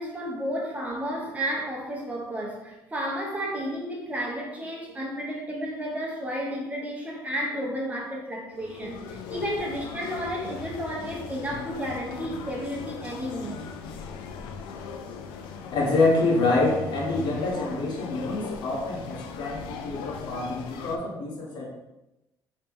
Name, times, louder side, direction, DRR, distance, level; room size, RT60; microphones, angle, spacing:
voice 1, 0.0-13.6, equal, 20° right, -2 dB, 0.9 m, -32 dB
sound 1, 8.5-21.0, left 6 dB, 85° left, 0.3 m, -39 dB
voice 2, 15.7-21.7, left 2 dB, 65° left, -2 dB, 1.1 m, -26 dB
3.1 x 2.9 x 3.5 m, 0.94 s
cardioid pair, 105°, 8 cm